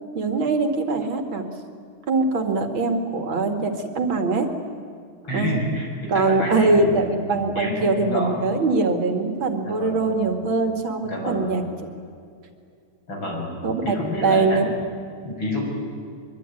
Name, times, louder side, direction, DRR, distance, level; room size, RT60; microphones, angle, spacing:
voice 1, 0.1-1.5 2.1-4.5 5.3-5.6 6.1-11.6 13.6-13.9 14.2-14.7, right 3 dB, 65° right, 6 dB, 2.9 m, -22 dB
voice 2, 5.2-7.2 7.5-8.4 9.6-10.0 11.0-11.5 13.1-13.5 13.8-14.6 15.2-15.6, left 1 dB, 65° left, 0 dB, 7.1 m, -28 dB
24.0 x 23.0 x 9.9 m, 2.4 s
omnidirectional pair, 2.3 m